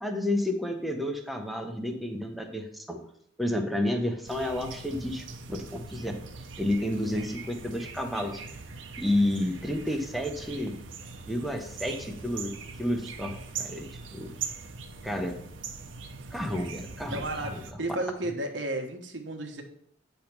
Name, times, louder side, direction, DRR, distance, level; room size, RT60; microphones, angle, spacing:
voice 1, 0.0-3.0 3.4-6.1 6.6-8.4 9.0-10.8 11.3-14.4 15.0-15.4 16.3-17.6, left 1 dB, ahead, 3 dB, 0.9 m, -31 dB
sound 1, 4.3-17.7, right 5 dB, 90° right, 0.8 m, -41 dB
voice 2, 17.1-19.6, right 1 dB, 70° right, 4 dB, 1.2 m, -33 dB
9.2 x 3.5 x 6.0 m, 0.68 s
head